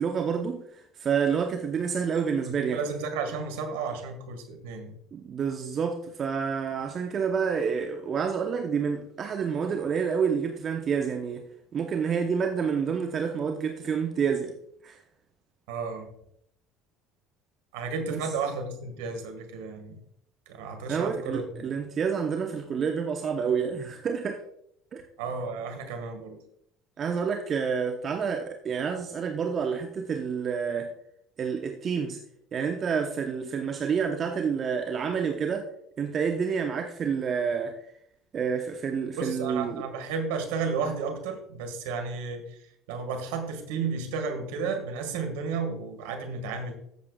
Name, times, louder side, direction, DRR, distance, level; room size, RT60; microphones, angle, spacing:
voice 1, 0.0-2.8 5.1-11.4 11.7-14.5 14.8-15.0 18.1-18.2 20.9-24.4 24.9-25.0 27.0-30.9 31.4-32.2 32.5-35.7 36.0-37.7 38.3-39.8, right 6 dB, 40° right, 4 dB, 0.9 m, -28 dB
voice 2, 2.5-5.0 15.7-16.1 17.7-20.0 20.5-21.7 25.2-26.4 39.2-46.7, right 5 dB, 65° right, 5 dB, 1.7 m, -33 dB
14.0 x 7.3 x 2.4 m, 0.70 s
figure-of-eight pair, 60°, 0 cm